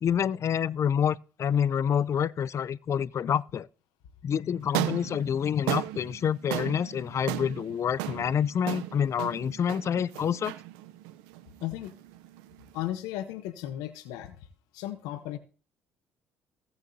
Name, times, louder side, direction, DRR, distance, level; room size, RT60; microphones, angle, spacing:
voice 1, 0.0-3.7 4.2-10.5, left 8 dB, 50° left, 0.5 m, -27 dB
sound 1, 4.6-12.9, right 15 dB, 90° right, 0.7 m, -36 dB
voice 2, 11.6-11.9 12.7-14.4 14.7-15.4, left 13 dB, 85° left, 1.0 m, -35 dB
16.5 x 6.9 x 2.8 m
supercardioid pair, 70°, 6 cm